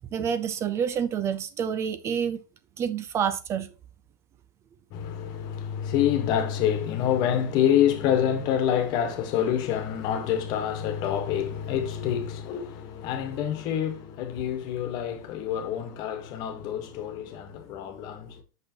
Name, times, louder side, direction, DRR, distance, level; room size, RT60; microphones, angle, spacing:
voice 1, 0.1-2.4 2.8-3.7, right 8 dB, 30° right, 0.5 m, -28 dB
voice 2, 4.9-18.4, left 9 dB, 45° left, 1.4 m, -27 dB
7.5 x 6.2 x 3.0 m
supercardioid pair, 135°, 10 cm